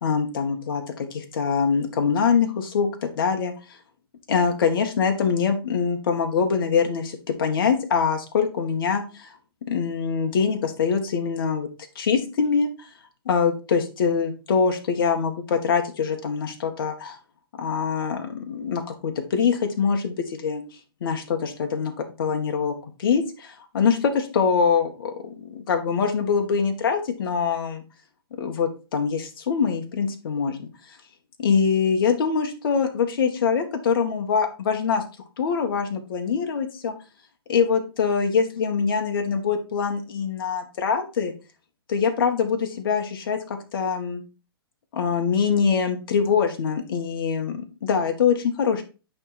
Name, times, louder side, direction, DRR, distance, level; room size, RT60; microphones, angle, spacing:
voice 1, 0.0-2.9 3.2-3.5 4.3-9.3 9.7-11.7 12.0-12.7 13.3-17.2 17.6-20.6 21.0-21.9 22.2-22.7 23.0-27.8 28.4-30.7 31.4-35.0 35.4-36.9 37.5-41.3 41.9-44.2 44.9-48.8, left 6 dB, 60° left, 4 dB, 2.0 m, -24 dB
9.7 x 3.8 x 4.3 m, 0.32 s
hypercardioid pair, 135°, 13 cm